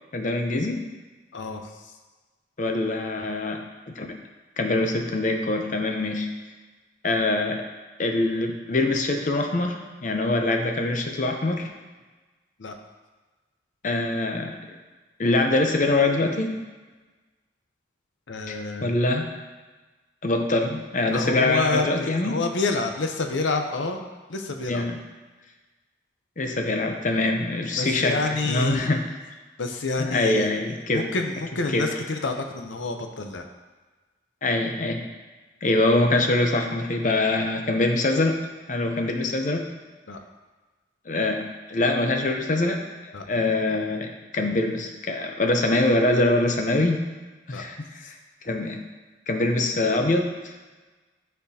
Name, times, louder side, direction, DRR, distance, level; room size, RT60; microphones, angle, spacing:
voice 1, 0.1-0.9 2.6-3.6 4.0-4.1 4.6-6.3 7.0-7.6 8.0-11.7 13.8-14.6 15.2-16.6 18.5-18.6 18.8-19.3 20.2-22.4 24.7-25.0 26.4-28.2 28.5-29.0 30.0-31.1 31.7-31.9 34.4-35.0 35.6-38.4 38.7-39.6 41.1-42.9 43.3-47.0 47.5-47.8 48.1-48.2 48.4-48.8 49.3-50.5, left 2 dB, 40° left, 4 dB, 0.6 m, -24 dB
voice 2, 1.3-1.9 12.6-12.8 18.3-19.0 21.1-24.0 24.3-24.8 27.8-28.9 29.6-30.5 30.9-33.5 40.1-40.2 43.1-43.2 47.5-47.6 48.0-48.1, left 3 dB, 85° left, 4 dB, 0.7 m, -28 dB
11.5 x 4.3 x 2.8 m, 1.3 s
head